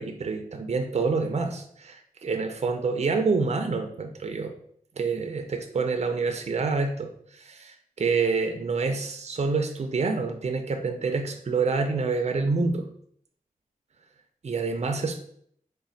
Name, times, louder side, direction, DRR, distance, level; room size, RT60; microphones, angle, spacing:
voice 1, 0.0-4.5 5.0-12.9 14.4-15.2, right 4 dB, 50° right, 5 dB, 0.4 m, -27 dB
4.1 x 2.1 x 3.8 m, 0.65 s
wide cardioid pair, 95°, 14 cm